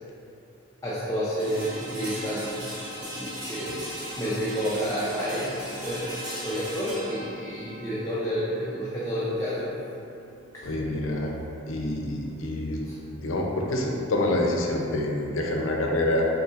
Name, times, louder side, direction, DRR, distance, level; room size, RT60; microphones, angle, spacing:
voice 1, 0.8-2.7 3.0-3.8 4.2-9.8 12.8-13.0, equal, 15° left, -9 dB, 0.5 m, -30 dB
sound 1, 1.4-11.3, equal, 40° right, 1.3 m, -38 dB
voice 2, 10.6-11.3 11.7-12.8 13.2-16.2, left 1 dB, 75° left, 0 dB, 0.6 m, -27 dB
5.4 x 3.9 x 2.4 m, 2.9 s
head